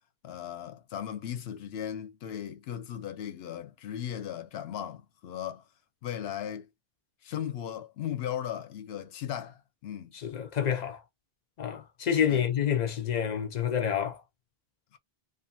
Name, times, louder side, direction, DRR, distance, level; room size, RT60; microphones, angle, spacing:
voice 1, 0.2-5.6 6.0-6.7 7.2-10.1 12.3-12.5, left 10 dB, 85° left, 0.8 m, -37 dB
voice 2, 10.1-11.0 11.6-14.2, left 8 dB, 55° left, 0.5 m, -28 dB
2.5 x 2.5 x 2.6 m
omnidirectional pair, 1.0 m